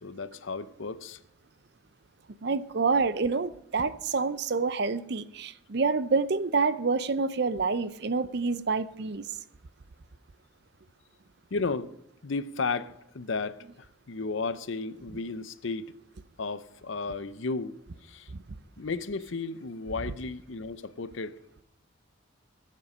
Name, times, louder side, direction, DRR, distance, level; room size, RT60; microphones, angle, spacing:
voice 1, 0.0-1.2 11.5-11.9 12.2-15.9 16.4-17.8 18.0-18.3 18.8-21.4, left 4 dB, 65° left, 0.6 m, -34 dB
voice 2, 2.4-9.2 18.3-18.4, right 4 dB, 55° right, 0.6 m, -27 dB
19.5 x 7.5 x 5.5 m
head